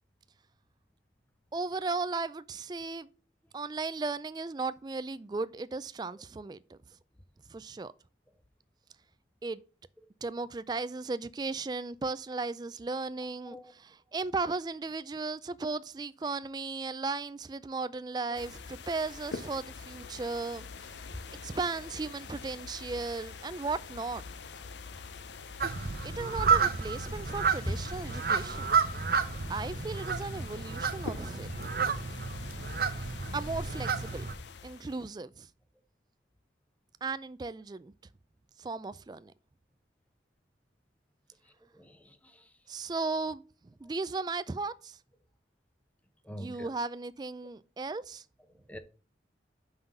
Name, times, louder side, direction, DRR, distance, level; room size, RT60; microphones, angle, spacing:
voice 1, 1.5-3.1 3.5-6.8 7.5-7.9 9.4-9.6 10.2-20.7 21.4-24.2 26.0-28.7 29.5-31.8 33.3-34.2 34.6-35.5 37.0-37.9 38.6-39.3 42.7-43.4 43.8-45.0 46.3-48.2, right 3 dB, 20° right, 0.3 m, -36 dB
sound 1, 18.3-35.1, left 5 dB, 75° left, 0.6 m, -45 dB
sound 2, 25.6-34.4, right 5 dB, 55° right, 0.7 m, -31 dB
voice 2, 41.7-42.5 46.2-46.7 48.7-48.8, equal, 10° left, 0.7 m, -40 dB
5.8 x 5.6 x 5.1 m
head